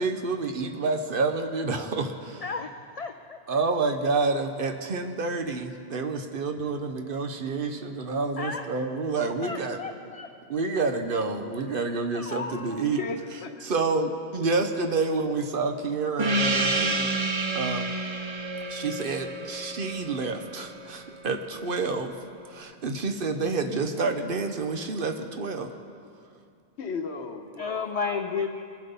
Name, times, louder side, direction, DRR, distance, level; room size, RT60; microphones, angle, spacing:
voice 1, 0.0-2.4 3.5-9.8 10.5-13.0 13.6-17.1 17.5-17.9 18.7-22.1 22.5-25.7, right 3 dB, 55° right, 6 dB, 1.0 m, -28 dB
voice 2, 2.4-3.4 8.4-8.7 9.4-10.3 12.1-12.9 27.6-28.6, left 5 dB, 50° left, 7 dB, 0.4 m, -33 dB
voice 3, 13.0-13.7 26.8-28.5, left 4 dB, 75° left, 6 dB, 1.2 m, -36 dB
Gong, 16.2-21.2, right 2 dB, 35° right, 0.6 m, -29 dB
22.0 x 7.5 x 5.4 m, 2.4 s
omnidirectional pair, 1.1 m